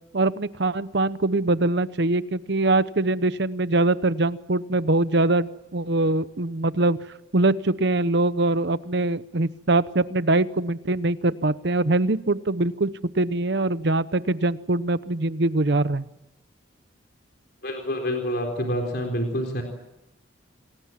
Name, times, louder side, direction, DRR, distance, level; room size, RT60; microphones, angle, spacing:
voice 1, 0.1-7.0 7.3-12.9 13.1-16.1, right 2 dB, 60° right, 15 dB, 0.9 m, -23 dB
voice 2, 17.6-19.6, equal, 55° left, 3 dB, 4.1 m, -27 dB
27.5 x 20.5 x 7.5 m, 0.94 s
head